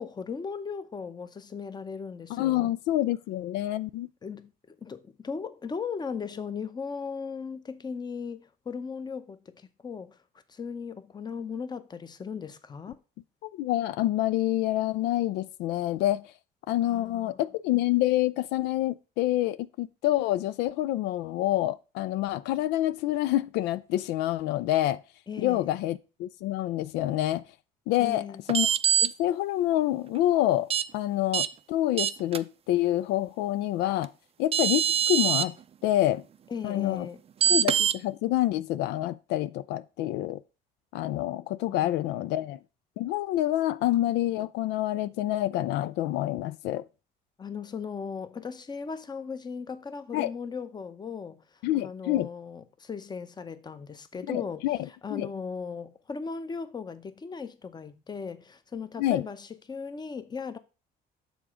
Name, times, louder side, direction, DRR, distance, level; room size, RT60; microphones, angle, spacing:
voice 1, 0.0-2.7 4.2-10.2 10.5-13.0 16.8-17.4 25.3-25.8 28.0-28.4 36.5-37.2 41.7-41.9 47.4-51.4 51.7-60.6, left 5 dB, 25° left, 0.8 m, -37 dB
voice 2, 2.3-4.1 13.5-16.2 16.7-25.0 25.4-27.4 27.9-28.7 29.0-34.1 34.4-35.5 35.8-36.2 36.6-37.1 37.5-40.4 40.9-42.6 43.0-46.8 50.1-50.3 51.6-52.3 54.3-54.8 55.1-55.3 59.0-59.2, left 14 dB, 90° left, 0.4 m, -27 dB
sound 1, 28.5-29.1 30.7-30.8 31.3-31.5 32.0-32.4 34.0-34.1 34.5-35.4 37.4-37.9, right 8 dB, 35° right, 0.4 m, -23 dB
7.0 x 3.8 x 6.1 m
cardioid pair, 110°, 17 cm